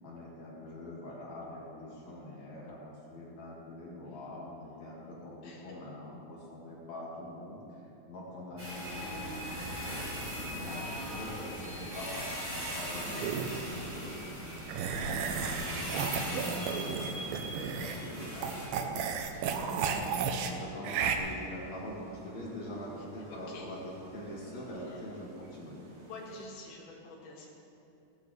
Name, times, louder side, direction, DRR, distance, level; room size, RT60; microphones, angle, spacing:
voice 1, 0.0-7.6 8.1-10.0 10.5-12.3 12.5-14.3 14.9-19.1 19.5-20.0 20.5-25.8, left 1 dB, 50° left, -6 dB, 3.2 m, -44 dB
voice 2, 5.4-5.8 10.7-11.0 19.3-19.7 23.0-23.7 24.8-25.0 26.0-27.5, left 2 dB, 75° left, -3 dB, 3.9 m, -49 dB
sound 1, 8.6-18.7, equal, 10° right, 3.3 m, -39 dB
sound 2, 8.9-26.5, right 3 dB, 55° right, 1.5 m, -51 dB
sound 3, 13.2-13.7 14.7-18.1 18.4-20.5 20.8-21.2, right 6 dB, 80° right, 2.5 m, -33 dB
17.5 x 13.0 x 3.3 m, 2.8 s
omnidirectional pair, 4.4 m